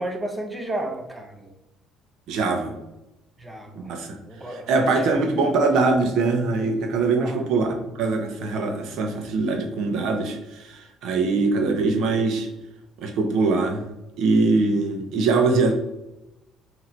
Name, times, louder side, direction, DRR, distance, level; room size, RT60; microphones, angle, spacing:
voice 1, 0.0-1.5 3.4-4.0 4.3-5.2 7.1-7.5 11.2-11.5, right 1 dB, 15° right, 4 dB, 0.7 m, -33 dB
voice 2, 2.3-2.7 3.7-4.2 4.5-7.7 7.9-12.5 13.0-13.8 14.2-15.7, right 3 dB, 70° right, 4 dB, 0.8 m, -22 dB
3.9 x 2.8 x 4.4 m, 0.92 s
cardioid pair, 115°, 0 cm